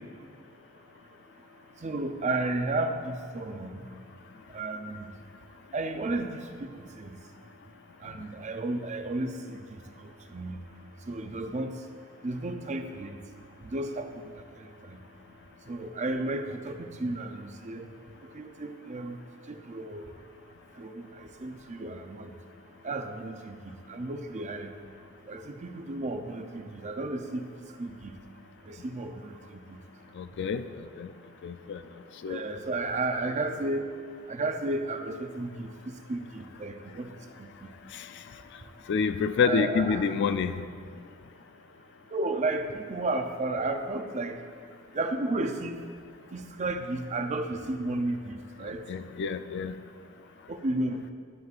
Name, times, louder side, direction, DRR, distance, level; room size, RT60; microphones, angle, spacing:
voice 1, 1.8-3.9 4.5-5.1 5.7-7.2 8.0-9.8 10.3-10.6 11.1-11.8 12.2-13.2 13.7-14.1 14.6-15.0 15.7-17.9 18.3-19.2 19.5-20.0 20.8-22.3 22.8-24.7 25.3-27.5 27.8-28.2 28.7-29.8 32.3-33.8 34.3-37.1 37.4-37.5 39.4-40.0 42.1-44.4 44.9-45.8 46.3-48.8 50.5-51.0, right 2 dB, 35° right, 6 dB, 0.5 m, -33 dB
voice 2, 30.2-31.1 31.4-31.8 32.2-32.4 37.9-38.2 38.9-40.7 48.9-49.7, left 6 dB, 55° left, 11 dB, 0.3 m, -28 dB
12.0 x 7.7 x 2.4 m, 2.1 s
head